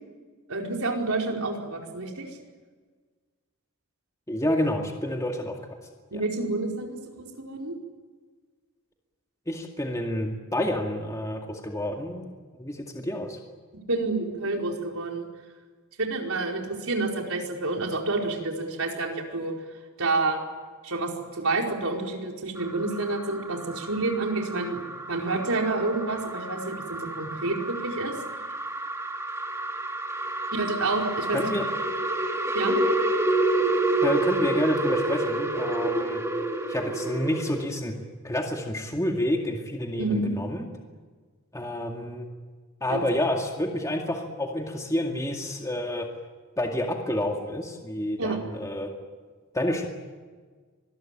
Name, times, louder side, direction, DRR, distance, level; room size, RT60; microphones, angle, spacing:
voice 1, 0.5-2.4 6.1-6.9 7.2-7.7 13.9-15.2 16.0-19.5 20.0-20.4 20.8-28.1 30.5-31.5 32.5-32.8 40.0-40.3 42.9-43.1 48.2-48.4, right 3 dB, 70° right, 1 dB, 4.7 m, -29 dB
voice 2, 4.3-5.6 6.1-6.2 9.5-12.3 12.6-13.4 31.3-31.6 34.0-36.2 36.7-38.0 38.2-40.6 41.5-42.3 42.8-46.1 46.6-48.9 49.5-49.9, left 1 dB, 15° left, 2 dB, 2.2 m, -29 dB
sound 1, 22.6-37.7, right 2 dB, 15° right, 2.5 m, -29 dB
25.5 x 20.5 x 9.1 m, 1.5 s
head